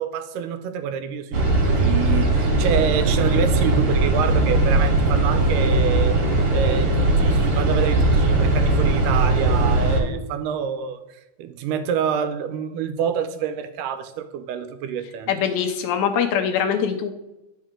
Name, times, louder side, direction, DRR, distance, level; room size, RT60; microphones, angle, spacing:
voice 1, 0.0-6.2 6.5-15.3, right 7 dB, 85° right, 9 dB, 2.2 m, -27 dB
sound 1, 1.3-10.0, right 2 dB, 55° right, 2.4 m, -19 dB
voice 2, 15.3-17.1, left 7 dB, 80° left, 7 dB, 1.9 m, -23 dB
10.5 x 5.4 x 3.7 m, 0.95 s
omnidirectional pair, 3.7 m